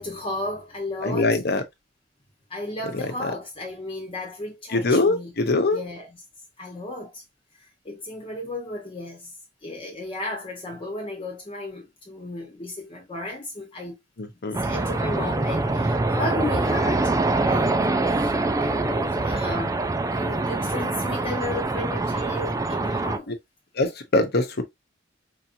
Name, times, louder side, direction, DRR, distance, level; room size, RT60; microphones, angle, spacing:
voice 1, 0.0-1.4 2.5-5.3 5.7-6.1 6.6-7.2 7.8-9.3 9.6-14.0 14.6-17.1 17.4-18.3 18.6-23.3, left 2 dB, 30° left, 1.2 m, -34 dB
voice 2, 1.0-1.6 2.9-3.3 4.7-5.8 14.2-14.6 23.3-23.4 23.7-24.6, left 2 dB, 55° left, 1.0 m, -23 dB
sound 1, 14.5-23.2, right 2 dB, 15° right, 0.4 m, -24 dB
4.7 x 2.9 x 2.6 m
head